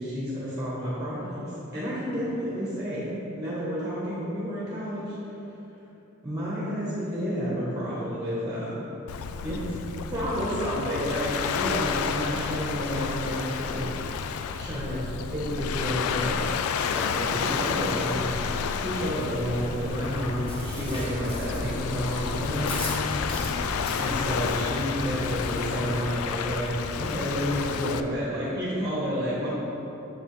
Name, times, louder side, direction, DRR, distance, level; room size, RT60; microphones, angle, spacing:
voice 1, 0.0-5.1 6.2-8.9 9.4-9.8 10.1-14.2 14.6-15.0 15.3-23.1 23.5-26.7 27.0-29.5, equal, 15° right, -7 dB, 1.1 m, -30 dB
Waves surf, 9.1-28.0, left 6 dB, 90° left, 0.3 m, -31 dB
Chewing mastication, 19.9-25.6, left 1 dB, 25° left, 0.9 m, -36 dB
6.2 x 6.2 x 3.3 m, 3.0 s
head